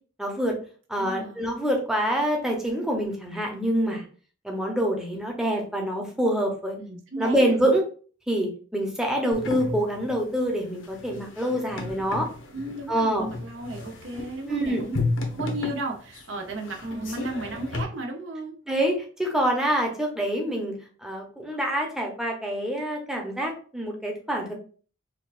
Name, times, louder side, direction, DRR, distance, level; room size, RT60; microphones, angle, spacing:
voice 1, 0.2-0.6 0.9-4.0 4.4-6.8 7.2-7.8 8.3-12.3 12.9-13.3 14.5-14.8 18.7-20.7 21.0-24.5, right 1 dB, 5° right, 0 dB, 0.7 m, -26 dB
voice 2, 1.0-1.5 6.8-7.5 12.5-15.0 15.3-18.6, right 2 dB, 70° right, 1 dB, 0.7 m, -34 dB
sound 1, 9.3-17.8, left 2 dB, 75° left, 0.9 m, -33 dB
4.4 x 2.5 x 2.4 m, 0.41 s
head